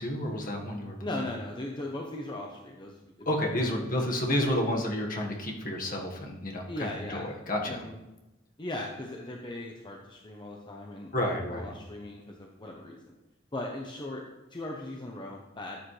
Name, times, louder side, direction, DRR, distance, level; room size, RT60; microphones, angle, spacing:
voice 1, 0.0-1.2 3.2-7.8 11.1-11.7, left 1 dB, 45° left, 1 dB, 1.6 m, -30 dB
voice 2, 1.0-4.4 6.7-7.3 7.6-8.0 8.6-13.1 13.5-14.2 14.5-15.8, left 1 dB, 25° left, 0 dB, 0.9 m, -39 dB
12.5 x 8.5 x 3.3 m, 1.0 s
head